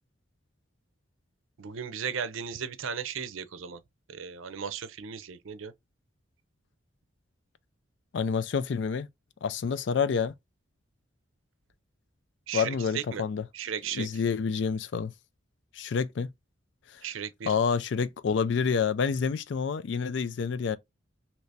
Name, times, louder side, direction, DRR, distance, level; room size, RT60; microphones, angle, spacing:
voice 1, 1.6-3.8 4.1-5.7 12.5-13.2 13.5-14.1 17.0-17.5, right 7 dB, 85° right, 0.5 m, -36 dB
voice 2, 8.1-9.1 9.4-10.3 12.5-13.4 13.9-15.1 15.7-16.3 16.9-17.0 17.5-20.8, left 6 dB, 65° left, 0.4 m, -28 dB
3.2 x 2.9 x 2.6 m
head